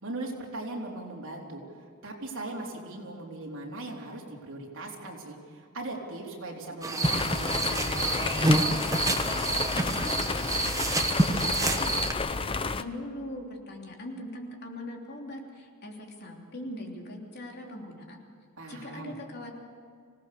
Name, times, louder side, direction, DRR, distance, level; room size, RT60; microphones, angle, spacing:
voice 1, 0.0-1.6 2.0-8.8 9.4-10.1 18.6-19.2, right 2 dB, 60° right, -1 dB, 3.9 m, -39 dB
sound 1, 6.8-12.1, right 2 dB, 15° right, 1.3 m, -27 dB
sound 2, 7.0-12.8, left 4 dB, 25° left, 0.6 m, -31 dB
voice 2, 11.3-18.2 18.7-19.5, left 1 dB, 50° left, 1 dB, 3.2 m, -41 dB
25.5 x 18.0 x 6.9 m, 2.3 s
head